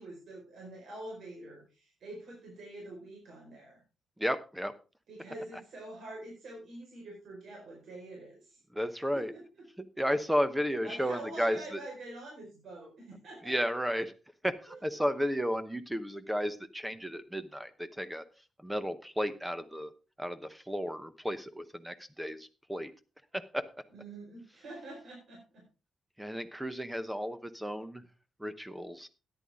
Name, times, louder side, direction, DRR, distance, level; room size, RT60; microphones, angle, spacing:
voice 1, 0.0-3.8 5.1-8.6 9.1-9.4 10.8-13.5 14.7-14.8 23.9-25.6, right 2 dB, 65° right, -2 dB, 4.8 m, -46 dB
voice 2, 4.2-4.7 8.7-9.3 9.8-11.8 13.4-14.1 14.4-18.2 18.6-19.9 20.2-22.9 23.3-23.6 26.2-28.1 28.4-29.1, equal, 5° right, 12 dB, 0.9 m, -33 dB
13.5 x 10.5 x 3.7 m, 0.32 s
wide cardioid pair, 150°, 0 cm